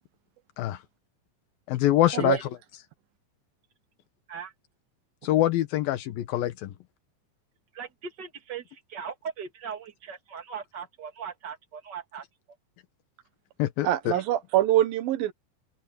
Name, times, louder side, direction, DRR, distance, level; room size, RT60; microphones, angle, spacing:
voice 1, 1.7-2.5 5.2-6.7 13.6-14.1, left 14 dB, 85° left, 2.9 m, -25 dB
voice 2, 7.7-12.2, right 7 dB, 30° right, 2.8 m, -39 dB
voice 3, 13.8-15.3, right 13 dB, 90° right, 3.1 m, -24 dB
open air
omnidirectional pair, 4.0 m